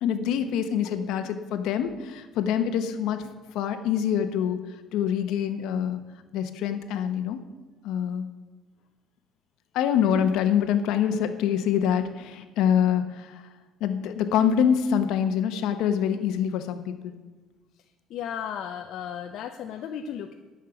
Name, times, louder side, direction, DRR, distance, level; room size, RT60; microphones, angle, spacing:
voice 1, 0.0-3.3 3.5-4.6 4.9-6.0 6.3-7.4 7.8-8.3 9.7-13.4 13.8-17.1, left 8 dB, 65° left, 8 dB, 1.0 m, -25 dB
voice 2, 18.1-20.3, left 8 dB, 50° left, 4 dB, 0.6 m, -34 dB
11.0 x 6.5 x 8.9 m, 1.3 s
cardioid pair, 180°, 0 cm